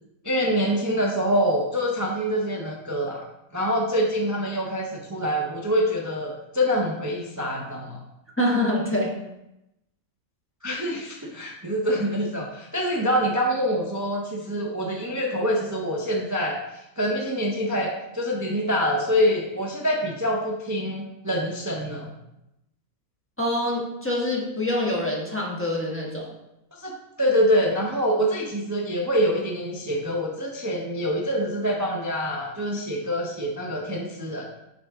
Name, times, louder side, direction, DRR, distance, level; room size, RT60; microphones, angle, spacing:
voice 1, 0.2-3.3 3.5-8.0 10.6-22.1 26.7-26.9 27.2-34.5, equal, 20° right, -1 dB, 0.5 m, -25 dB
voice 2, 8.4-9.1 23.4-26.3, left 1 dB, 10° left, -3 dB, 1.1 m, -25 dB
5.9 x 5.1 x 3.6 m, 0.88 s
omnidirectional pair, 1.5 m